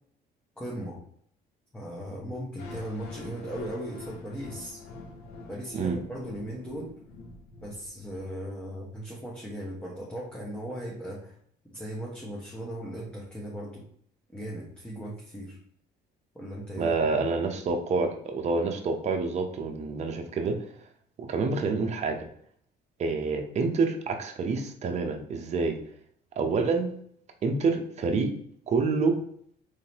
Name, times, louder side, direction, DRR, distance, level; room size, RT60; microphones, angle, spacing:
voice 1, 0.6-1.0 1.7-4.8 5.5-6.9 7.6-11.3 11.7-13.8 14.3-15.6 16.3-16.9, equal, 5° left, -5 dB, 0.9 m, -37 dB
sound 1, 2.6-8.6, left 3 dB, 75° left, 0.8 m, -45 dB
voice 2, 16.8-20.7 21.2-22.2 23.0-25.8 26.4-26.9 27.4-28.4 28.7-29.2, right 4 dB, 40° right, 4 dB, 0.7 m, -27 dB
3.7 x 3.2 x 2.8 m, 0.63 s
cardioid pair, 110°, 17 cm